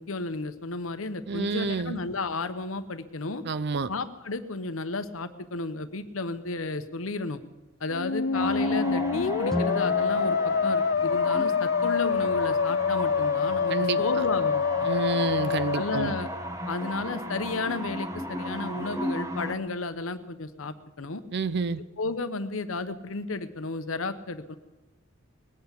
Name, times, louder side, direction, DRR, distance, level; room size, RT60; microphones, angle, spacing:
voice 1, 0.0-3.4 3.9-7.4 7.8-14.9 15.7-16.3 16.7-21.2 21.7-24.5, left 3 dB, 80° left, 11 dB, 0.9 m, -33 dB
voice 2, 1.3-2.0 3.4-3.9 13.7-14.0 14.9-16.1 21.3-21.8, right 4 dB, 55° right, 15 dB, 0.5 m, -29 dB
Musical instrument, 7.9-16.7, left 5 dB, 55° left, 0.4 m, -26 dB
sound 1, 8.3-19.5, equal, 15° right, 1.3 m, -36 dB
Guitar, 9.5-12.1, left 1 dB, ahead, 0.6 m, -36 dB
20.5 x 8.3 x 8.1 m, 1.1 s
head